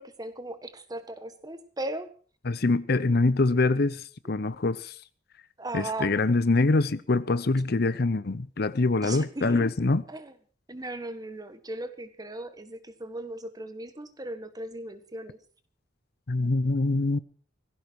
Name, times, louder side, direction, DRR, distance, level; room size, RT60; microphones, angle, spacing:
voice 1, 0.0-2.1 5.6-6.1 9.0-9.6 10.1-10.3 10.7-15.4, right 2 dB, 20° right, 1.6 m, -37 dB
voice 2, 2.5-5.0 5.7-10.0 16.3-17.2, left 3 dB, 55° left, 0.7 m, -24 dB
18.0 x 16.0 x 4.7 m
head